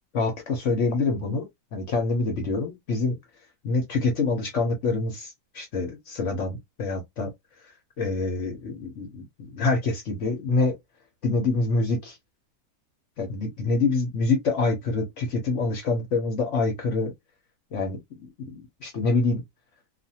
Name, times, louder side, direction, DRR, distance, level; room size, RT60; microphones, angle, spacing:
voice 1, 0.1-1.4 1.7-3.2 3.6-5.3 5.5-7.3 8.0-9.2 9.5-10.7 11.2-12.1 13.2-17.1 17.7-18.0 18.4-18.5 18.8-19.4, left 3 dB, 55° left, 1.0 m, -26 dB
2.6 x 2.5 x 2.8 m
omnidirectional pair, 1.8 m